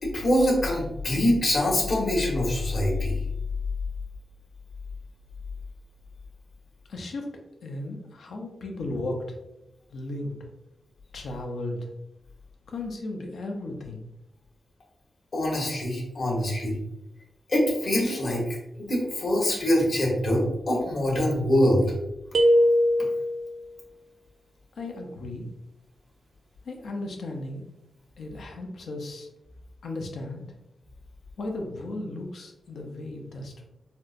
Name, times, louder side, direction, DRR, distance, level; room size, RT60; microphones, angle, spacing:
voice 1, 0.0-3.2 15.3-16.8 17.5-21.8, left 1 dB, 60° left, -3 dB, 1.2 m, -24 dB
voice 2, 6.9-7.3 7.6-9.4 9.9-10.3 11.1-11.8 12.7-14.0 24.8-25.5 26.6-27.6 28.2-29.3 29.8-30.5 31.4-33.7, left 2 dB, 85° left, 2 dB, 0.6 m, -35 dB
sound 1, 22.3-23.5, equal, 75° right, 0.4 m, -20 dB
4.2 x 2.1 x 2.5 m, 0.90 s
cardioid pair, 80°, 0 cm